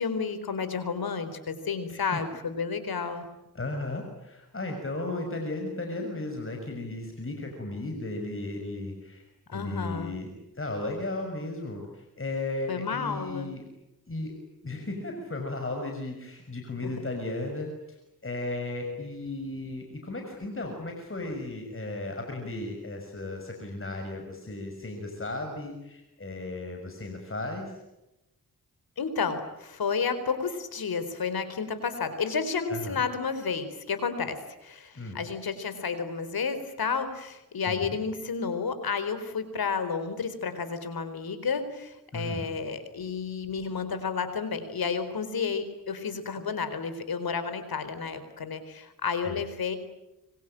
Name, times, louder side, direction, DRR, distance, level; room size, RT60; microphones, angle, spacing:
voice 1, 0.0-3.3 9.5-10.1 12.7-13.5 29.0-49.8, left 5 dB, 80° left, 11 dB, 4.3 m, -31 dB
voice 2, 3.5-9.2 9.5-10.3 10.5-13.6 14.1-14.3 14.6-18.0 18.2-27.7 32.7-33.0 34.9-35.2 37.7-38.0 42.1-42.5 49.2-49.4, left 2 dB, 35° left, 3 dB, 6.4 m, -35 dB
26.0 x 25.5 x 9.0 m, 0.94 s
cardioid pair, 70°, 36 cm